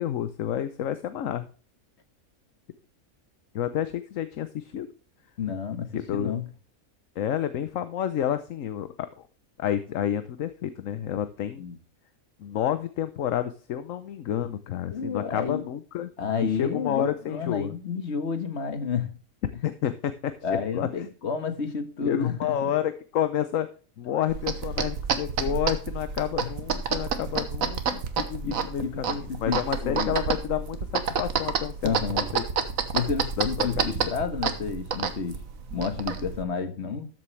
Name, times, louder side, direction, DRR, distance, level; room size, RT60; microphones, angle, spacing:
voice 1, 0.0-1.4 3.5-4.9 5.9-6.3 7.2-9.3 9.6-11.6 12.4-16.1 16.4-17.7 19.6-20.9 22.0-23.7 24.0-29.1 29.4-32.4 33.4-34.1, left 10 dB, 65° left, 1.1 m, -30 dB
voice 2, 5.4-6.5 11.6-11.8 14.9-15.6 16.2-19.1 20.4-22.7 26.4-26.5 28.4-30.2 31.8-32.3 32.9-35.4 35.7-37.1, left 6 dB, 50° left, 1.6 m, -30 dB
sound 1, 24.3-36.4, right 6 dB, 70° right, 1.5 m, -29 dB
13.0 x 7.6 x 3.2 m
omnidirectional pair, 1.5 m